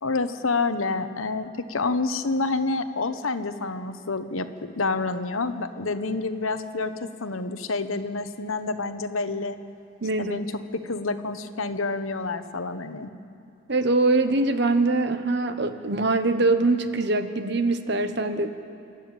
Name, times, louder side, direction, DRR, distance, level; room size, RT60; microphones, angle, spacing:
voice 1, 0.0-9.6 10.2-10.5 10.7-13.1, left 3 dB, 80° left, 10 dB, 1.0 m, -28 dB
voice 2, 10.0-10.4 13.7-18.5, right 2 dB, 55° right, 9 dB, 1.1 m, -23 dB
27.5 x 12.0 x 8.9 m, 2.6 s
head